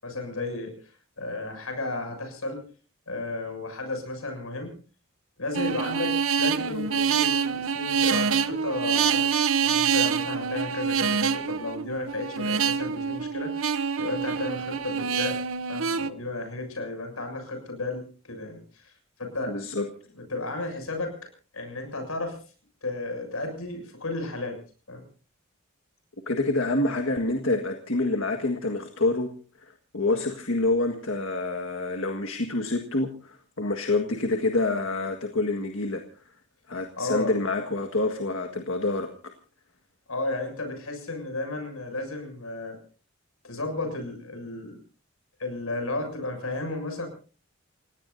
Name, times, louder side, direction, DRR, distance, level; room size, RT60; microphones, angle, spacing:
voice 1, 0.0-2.7 3.1-4.7 5.4-13.5 14.0-15.4 15.7-18.9 19.2-19.6 20.2-21.2 21.5-22.4 22.8-24.6 24.9-25.1 37.0-37.3 40.1-42.8 43.4-44.8 45.4-47.1, left 2 dB, 85° left, 5 dB, 7.1 m, -33 dB
sound 1, 5.6-16.1, right 6 dB, 75° right, 0.8 m, -26 dB
voice 2, 19.5-19.9 26.3-29.3 29.6-36.0 36.7-39.1, left 2 dB, 65° left, 4 dB, 1.8 m, -27 dB
29.5 x 17.5 x 2.7 m, 0.37 s
head